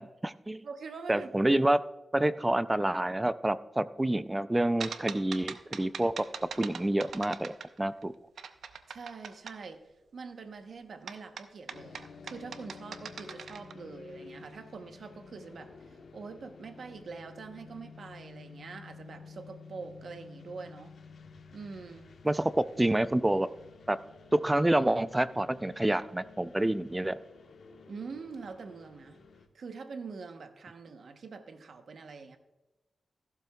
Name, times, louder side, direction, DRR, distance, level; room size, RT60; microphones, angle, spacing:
voice 1, 0.0-0.6 1.1-1.8 2.1-6.3 6.6-8.1 22.2-23.5 23.9-24.0 24.3-27.1, right 1 dB, 15° right, 14 dB, 0.4 m, -28 dB
voice 2, 0.6-1.5 5.5-5.6 8.9-9.8 10.1-20.9 21.5-22.1 27.9-29.2 29.5-32.4, right 4 dB, 65° right, 7 dB, 0.9 m, -44 dB
sound 1, 4.8-8.0 8.4-9.6 11.1-13.7, right 6 dB, 85° right, 0.5 m, -41 dB
sound 2, 11.7-29.5, left 5 dB, 80° left, 1.2 m, -52 dB
14.5 x 12.0 x 2.3 m, 1.0 s
wide cardioid pair, 120°, 0 cm